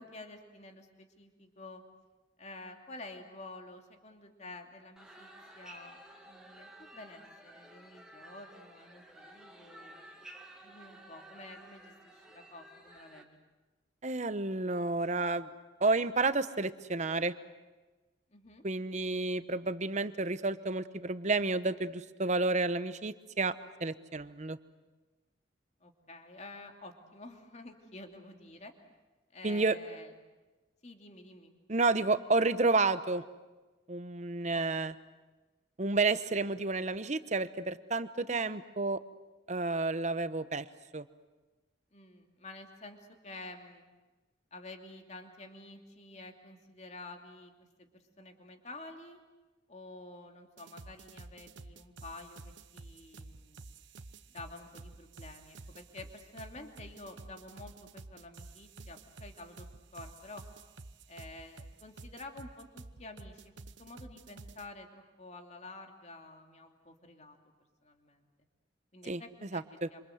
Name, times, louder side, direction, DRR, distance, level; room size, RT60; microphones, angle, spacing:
voice 1, 0.0-1.8 2.4-5.3 5.5-6.0 6.3-10.0 10.6-13.4 18.3-18.6 25.8-28.7 29.3-30.1 30.8-31.5 34.5-34.6 38.3-38.6 41.9-43.8 44.5-47.9 48.2-49.2 49.7-53.6 54.3-59.7 59.9-60.4 61.1-63.4 63.8-67.4 67.8-68.3 68.9-69.6 69.9-70.0, left 2 dB, 35° left, 4 dB, 2.8 m, -50 dB
sound 1, 5.0-13.2, right 1 dB, 5° right, 2.6 m, -53 dB
voice 2, 14.0-15.5 15.8-17.3 18.6-23.5 23.8-24.6 29.4-29.8 31.7-33.2 33.9-34.9 35.8-39.0 39.5-40.7 40.9-41.0 69.1-69.2 69.5-69.9, right 3 dB, 40° right, 13 dB, 1.0 m, -30 dB
sound 2, 50.6-64.7, right 3 dB, 75° right, 1.1 m, -50 dB
27.0 x 26.5 x 7.9 m, 1.2 s
head